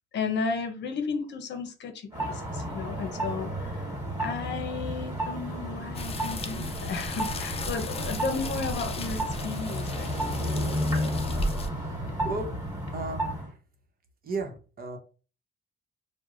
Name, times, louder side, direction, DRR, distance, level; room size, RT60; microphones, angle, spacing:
voice 1, 0.1-3.9 4.2-10.1, left 4 dB, 60° left, 7 dB, 0.7 m, -34 dB
sound 1, 2.1-13.5, equal, 15° right, 1.8 m, -32 dB
sound 2, 5.9-11.7, left 1 dB, 30° left, 0.5 m, -36 dB
voice 2, 11.5-12.6 12.9-13.6 14.2-15.0, right 3 dB, 50° right, 4 dB, 0.9 m, -36 dB
4.6 x 2.2 x 2.5 m, 0.36 s
cardioid pair, 90°, 20 cm